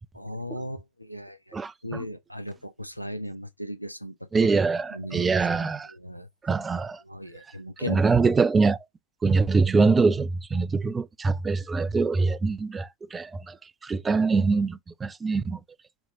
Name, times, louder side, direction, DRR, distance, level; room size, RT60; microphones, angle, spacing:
voice 1, 0.1-4.5 4.9-5.3 5.6-6.3 7.0-8.0, equal, 90° left, 0.4 m, -37 dB
voice 2, 1.5-2.0 4.3-5.9 6.4-7.0 7.9-8.8 9.2-13.6 13.8-15.6, right 4 dB, 15° right, 0.3 m, -24 dB
4.4 x 2.8 x 2.7 m
figure-of-eight pair, 90°, 0 cm